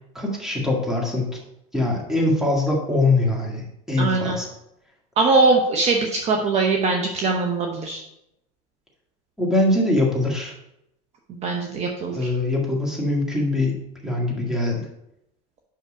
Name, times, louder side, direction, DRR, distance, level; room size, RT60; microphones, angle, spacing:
voice 1, 0.2-1.3 1.7-4.5 9.4-10.5 12.1-14.9, left 2 dB, ahead, -2 dB, 1.8 m, -22 dB
voice 2, 4.0-4.4 5.2-8.0 11.3-12.3, right 3 dB, 35° right, 2 dB, 0.9 m, -21 dB
5.7 x 5.6 x 5.0 m, 0.82 s
supercardioid pair, 120°, 20 cm